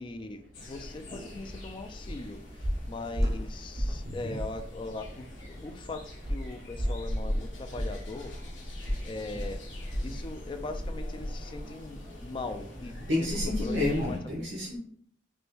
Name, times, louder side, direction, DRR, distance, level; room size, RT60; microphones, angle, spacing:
voice 1, 0.0-8.4 8.6-9.6 10.0-14.2, left 3 dB, 25° left, 7 dB, 0.3 m, -40 dB
sound 1, 0.5-14.2, left 1 dB, 80° left, 1.2 m, -40 dB
sound 2, 1.5-1.7 2.0-2.3 2.6-4.1 4.3-4.6 5.0-5.1 6.2-10.2 10.5-10.8 11.1-11.2, equal, 20° right, 0.7 m, -33 dB
voice 2, 4.0-4.4 13.1-14.8, left 2 dB, 65° right, -3 dB, 1.0 m, -30 dB
5.2 x 2.1 x 3.1 m, 0.64 s
head